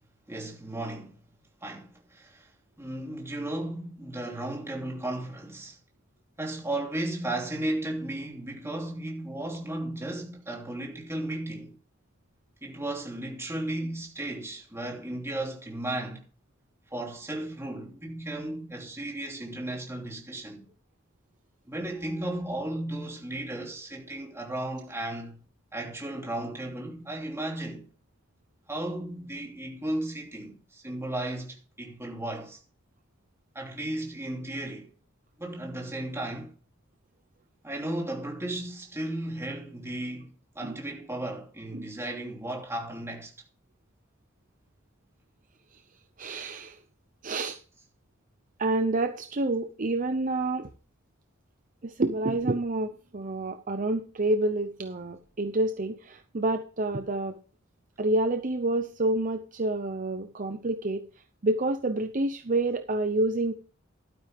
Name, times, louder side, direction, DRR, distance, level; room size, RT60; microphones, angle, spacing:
voice 1, 0.3-1.2 1.6-2.5 2.8-5.8 6.4-11.8 12.6-16.2 16.9-20.7 21.7-25.4 25.7-27.9 28.7-32.6 33.5-34.9 35.4-36.5 37.6-40.3 40.5-43.3, right 1 dB, 15° right, 3.0 m, -35 dB
voice 2, 46.2-46.8 47.2-47.6 48.6-50.7 51.8-57.4 58.0-61.1 61.4-63.5, right 2 dB, 40° right, 0.7 m, -28 dB
12.0 x 9.5 x 3.6 m
head